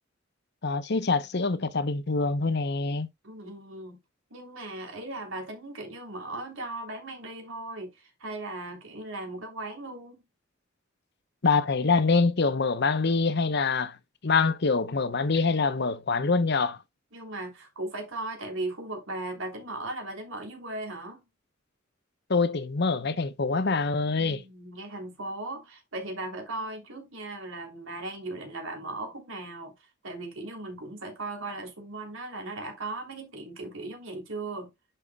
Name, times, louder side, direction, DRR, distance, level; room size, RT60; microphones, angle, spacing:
voice 1, 0.6-3.1 11.4-13.9 14.2-16.8 22.3-24.4, left 4 dB, 55° left, 0.8 m, -25 dB
voice 2, 3.2-4.0 4.3-10.2 17.1-21.2 24.2-34.7, right 2 dB, 85° right, 3.2 m, -37 dB
11.0 x 5.7 x 2.3 m
head